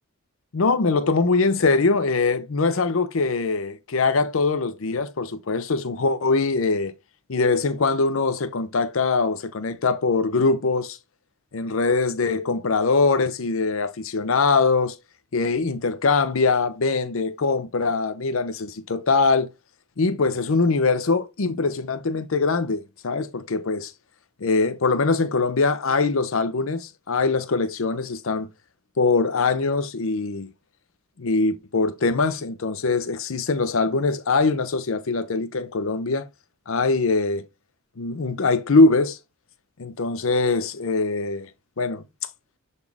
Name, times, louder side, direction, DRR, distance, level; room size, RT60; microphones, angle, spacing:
voice 1, 0.5-6.9 7.3-11.0 11.5-15.0 15.3-19.5 20.0-23.9 24.4-28.5 29.0-30.5 31.2-36.3 36.7-37.5 38.0-39.2 39.8-41.5 41.8-42.0, left 3 dB, 65° left, 0.6 m, -22 dB
7.1 x 4.2 x 3.4 m
head